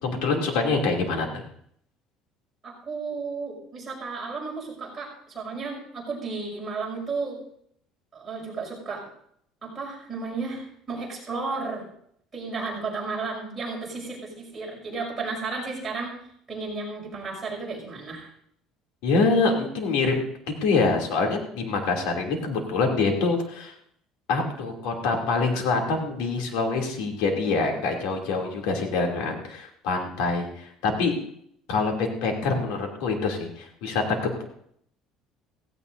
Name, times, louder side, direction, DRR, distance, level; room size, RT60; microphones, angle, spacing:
voice 1, 0.0-1.3 19.0-20.1 20.6-23.7 24.3-31.1 31.7-34.4, left 4 dB, 90° left, 2 dB, 2.8 m, -25 dB
voice 2, 2.6-7.4 8.1-9.0 9.6-11.9 12.3-16.1 16.5-18.3, right 4 dB, 15° right, -4 dB, 6.1 m, -33 dB
16.5 x 16.0 x 2.7 m, 0.68 s
cardioid pair, 155°, 0 cm